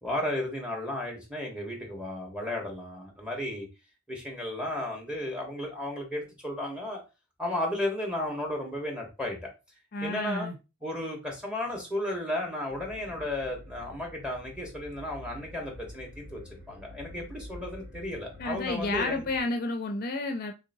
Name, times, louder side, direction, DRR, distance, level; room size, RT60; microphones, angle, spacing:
voice 1, 0.0-3.7 4.1-7.0 7.4-9.4 10.0-10.5 10.8-16.4 16.7-19.3, left 1 dB, 5° right, 0 dB, 1.2 m, -34 dB
voice 2, 9.9-10.6 18.4-20.5, left 2 dB, 50° left, 5 dB, 0.5 m, -31 dB
sound 1, 12.7-19.4, left 1 dB, 50° right, 0.7 m, -47 dB
3.8 x 3.3 x 2.7 m, 0.28 s
head